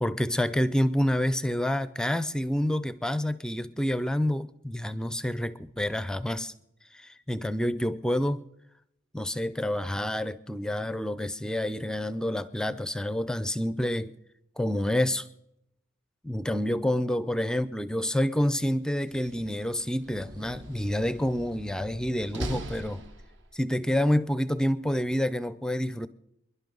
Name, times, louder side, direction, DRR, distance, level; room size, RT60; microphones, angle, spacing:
voice 1, 0.0-6.5 6.9-8.4 9.1-14.1 14.6-15.3 16.2-23.0 23.5-26.1, left 1 dB, 5° left, 15 dB, 0.4 m, -28 dB
Slam, 18.9-23.7, right 1 dB, 60° right, 1.3 m, -41 dB
26.0 x 11.5 x 3.9 m, 0.83 s
head